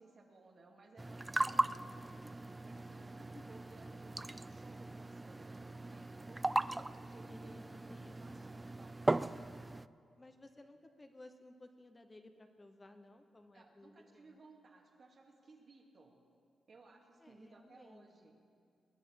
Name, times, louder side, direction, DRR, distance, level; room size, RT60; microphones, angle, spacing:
voice 1, 0.0-2.0 2.6-6.7 7.0-7.5 7.8-9.0 13.5-16.2 16.7-18.4, right 3 dB, 50° right, 1 dB, 2.3 m, -60 dB
sound 1, 1.0-9.9, right 2 dB, 20° right, 0.3 m, -38 dB
voice 2, 2.9-3.4 7.3-8.5 10.2-14.4 17.2-18.3, left 2 dB, 25° left, 7 dB, 1.1 m, -58 dB
20.0 x 9.2 x 7.6 m, 2.4 s
cardioid pair, 75°, 0 cm